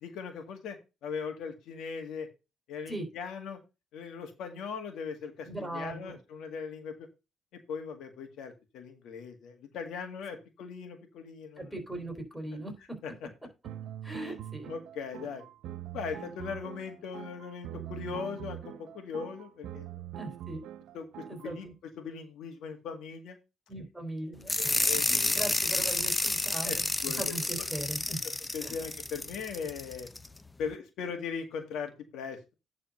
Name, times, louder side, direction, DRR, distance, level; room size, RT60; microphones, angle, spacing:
voice 1, 0.0-2.3 2.7-3.6 3.9-7.1 7.7-11.7 13.0-13.1 14.7-15.4 15.9-20.0 20.9-21.7 22.0-23.4 24.6-25.3 26.6-26.8 27.0-27.2 28.5-30.1 30.6-32.5, left 6 dB, 85° left, 5 dB, 1.9 m, -39 dB
voice 2, 5.4-6.2 10.3-10.4 11.6-13.0 14.0-14.7 20.2-20.7 21.3-21.7 23.7-24.7 25.1-26.9 27.2-28.2 28.6-28.7, right 1 dB, 5° right, 4 dB, 4.1 m, -39 dB
sound 1, 13.6-21.6, right 11 dB, 85° right, 0.6 m, -43 dB
sound 2, 24.5-30.3, left 2 dB, 15° left, 0.6 m, -30 dB
10.5 x 4.1 x 5.4 m, 0.27 s
cardioid pair, 90°, 0 cm